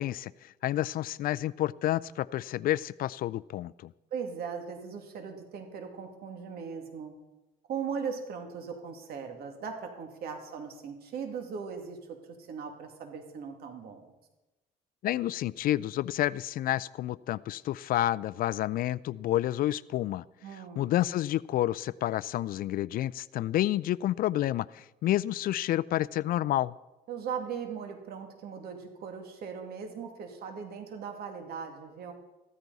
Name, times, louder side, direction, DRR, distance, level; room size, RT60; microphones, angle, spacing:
voice 1, 0.0-3.9 15.0-20.2 20.8-26.7, left 13 dB, 60° left, 21 dB, 0.4 m, -29 dB
voice 2, 4.1-7.1 7.7-14.1 20.4-20.9 27.1-32.1, right 6 dB, 65° right, 4 dB, 2.4 m, -39 dB
14.5 x 14.0 x 4.1 m, 1.0 s
cardioid pair, 110°, 17 cm